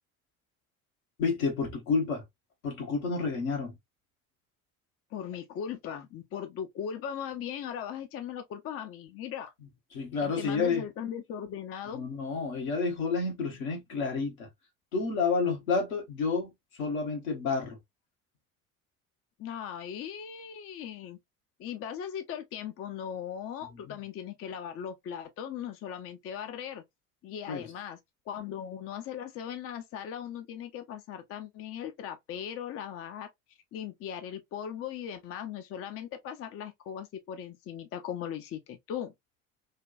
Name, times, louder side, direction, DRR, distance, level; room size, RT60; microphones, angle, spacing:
voice 1, 1.2-2.2 2.6-3.8 9.9-10.9 11.9-14.5 14.9-16.5 16.8-17.8 23.7-23.9 27.5-27.6, left 4 dB, 75° left, 1.2 m, -30 dB
voice 2, 5.1-9.5 10.2-12.1 19.4-21.2 21.6-26.8 27.2-28.0 28.3-33.3 33.7-39.1, left 9 dB, 35° left, 0.5 m, -38 dB
3.4 x 2.2 x 2.4 m
figure-of-eight pair, 60°, 42 cm